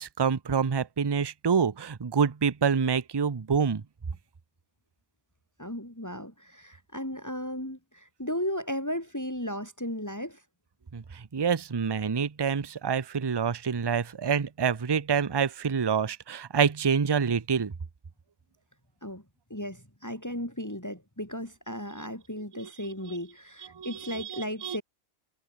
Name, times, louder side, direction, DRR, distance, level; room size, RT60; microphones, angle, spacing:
voice 1, 0.0-3.8 10.9-11.0 11.3-17.7 23.8-24.8, right 6 dB, 30° right, 0.5 m, -27 dB
voice 2, 5.6-10.4 19.0-19.2 19.5-24.8, equal, 10° left, 4.2 m, -35 dB
omnidirectional pair, 1.4 m